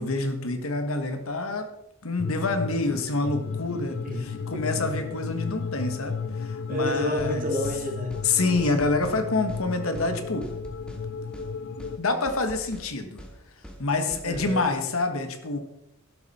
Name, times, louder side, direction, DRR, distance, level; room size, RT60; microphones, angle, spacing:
voice 1, 0.0-1.7 2.0-7.5 8.2-10.5 12.0-13.2 13.8-15.6, left 3 dB, 75° left, 7 dB, 1.5 m, -27 dB
sound 1, 2.2-12.0, left 5 dB, 60° left, 0.5 m, -34 dB
voice 2, 4.0-4.8 6.7-8.6 14.2-14.6, left 1 dB, 40° right, 2 dB, 2.7 m, -30 dB
sound 2, 7.2-7.3 7.6-7.8 8.1-8.3 8.6-9.2 9.5-9.6 9.9-10.1 10.4-11.0 11.3-11.5 11.8-12.0 12.3-12.9 13.2-13.3 13.6-13.8 14.1-14.5, equal, 5° left, 1.9 m, -43 dB
12.0 x 12.0 x 4.3 m, 0.85 s
head